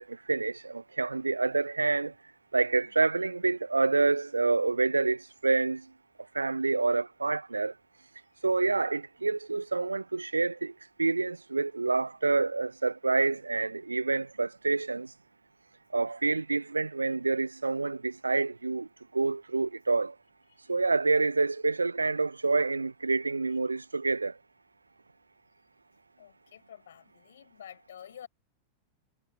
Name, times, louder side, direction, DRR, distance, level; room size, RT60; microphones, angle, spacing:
voice 1, 0.0-2.1 2.5-5.9 6.3-7.7 8.4-10.7 11.0-15.1 15.9-18.9 19.1-20.1 20.7-24.3, right 3 dB, 80° right, 0.9 m, -27 dB
voice 2, 26.2-28.3, left 9 dB, 65° left, 7.0 m, -50 dB
figure-of-eight pair, 90°, 0 cm